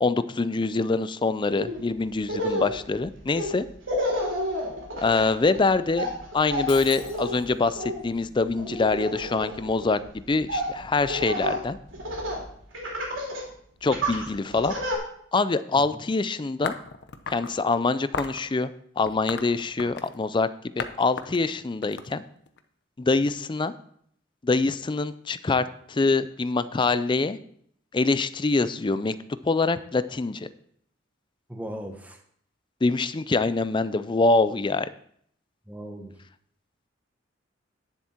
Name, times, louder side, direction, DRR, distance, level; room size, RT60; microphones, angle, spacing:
voice 1, 0.0-3.6 4.9-6.1 6.3-11.8 13.8-14.8 15.3-16.7 17.3-18.7 19.0-20.5 20.8-22.2 23.0-23.7 24.4-27.4 27.9-29.1 29.4-30.5 32.8-34.9, left 3 dB, 25° left, 14 dB, 0.4 m, -24 dB
Laughter, 1.6-1.8 2.2-12.4 12.7-13.5 13.9-15.0, equal, 85° right, 3.3 m, -31 dB
Shatter, 6.7-7.7, left 6 dB, 85° left, 1.8 m, -41 dB
sound 1, 16.6-17.5 18.1-18.4 19.1-20.2 20.8-20.9 21.2-22.6, left 5 dB, 60° left, 0.8 m, -34 dB
voice 2, 31.5-32.2 35.7-36.2, equal, 10° right, 3 dB, 1.1 m, -38 dB
9.9 x 7.3 x 4.4 m, 0.66 s
head